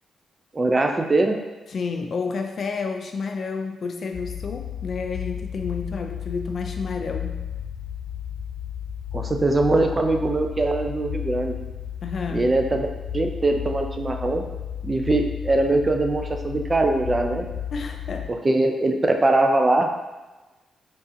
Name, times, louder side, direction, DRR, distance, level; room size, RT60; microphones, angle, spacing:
voice 1, 0.5-1.4 9.1-11.6 12.3-12.9 13.1-14.4 14.8-17.5 18.3-19.9, right 2 dB, 25° right, 4 dB, 0.4 m, -22 dB
voice 2, 1.7-7.5 12.0-12.5 17.7-18.4, left 4 dB, 55° left, 4 dB, 0.3 m, -30 dB
sound 1, 4.1-18.3, left 9 dB, 90° left, 1.0 m, -33 dB
5.2 x 2.5 x 2.7 m, 1.2 s
cardioid pair, 95°, 0 cm